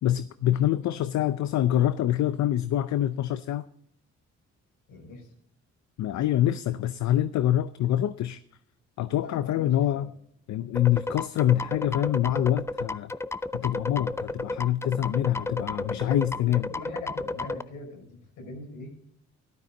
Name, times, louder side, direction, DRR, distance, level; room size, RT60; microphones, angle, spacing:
voice 1, 0.0-3.7 6.0-8.4 9.0-10.1 10.5-13.1 13.5-16.7, left 12 dB, 70° left, 0.6 m, -25 dB
voice 2, 4.9-5.3 7.8-7.9 9.2-9.6 9.9-10.1 15.8-16.0 16.4-18.9, left 2 dB, 85° left, 5.8 m, -42 dB
sound 1, 10.8-17.6, left 2 dB, 10° left, 0.4 m, -32 dB
13.0 x 12.5 x 3.9 m
cardioid pair, 90°, 30 cm